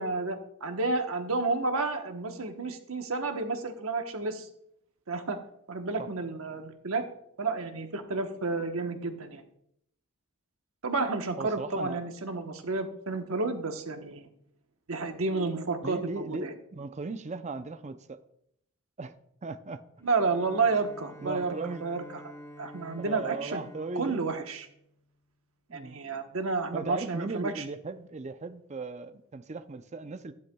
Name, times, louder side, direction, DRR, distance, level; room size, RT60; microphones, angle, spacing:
voice 1, 0.0-4.5 5.1-5.4 5.7-7.0 7.4-9.4 10.8-14.3 14.9-16.5 20.0-21.5 21.8-22.0 22.6-23.6 23.9-24.7 25.7-27.6, right 3 dB, 75° right, 1.1 m, -31 dB
voice 2, 11.4-12.1 15.8-18.2 19.0-19.1 19.4-19.8 21.2-21.8 23.0-24.4 25.7-26.0 26.7-30.3, right 3 dB, 35° right, 0.5 m, -37 dB
Bowed string instrument, 20.0-25.2, equal, 15° left, 0.8 m, -49 dB
12.5 x 10.5 x 2.3 m
head